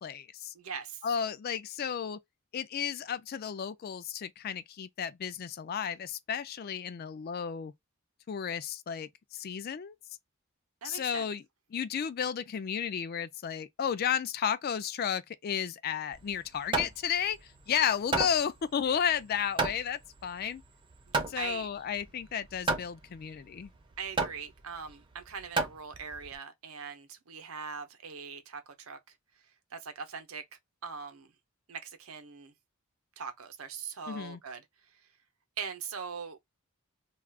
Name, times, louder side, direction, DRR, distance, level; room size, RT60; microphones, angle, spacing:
voice 1, 0.0-0.5 1.0-2.2 2.5-7.7 8.3-10.0 10.8-11.4 11.7-20.6 21.3-23.7 34.1-34.4, left 8 dB, 45° left, 0.3 m, -33 dB
voice 2, 0.5-1.0 10.8-11.3 21.1-21.7 24.0-29.0 29.7-30.4 30.8-31.3 31.7-32.5 33.2-34.6 35.6-36.4, right 6 dB, 80° right, 0.7 m, -41 dB
Hammer, 16.1-26.3, right 3 dB, 25° right, 0.5 m, -34 dB
2.4 x 2.3 x 3.3 m
head